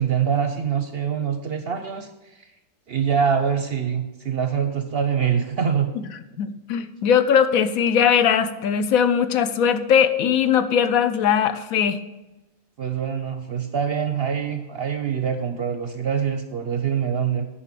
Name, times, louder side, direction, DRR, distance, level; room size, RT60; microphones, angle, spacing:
voice 1, 0.0-2.5 2.9-5.9 12.8-17.5, right 7 dB, 55° right, 7 dB, 0.7 m, -24 dB
voice 2, 6.4-12.0, left 8 dB, 70° left, 11 dB, 1.0 m, -20 dB
10.0 x 5.6 x 6.7 m, 1.0 s
omnidirectional pair, 1.6 m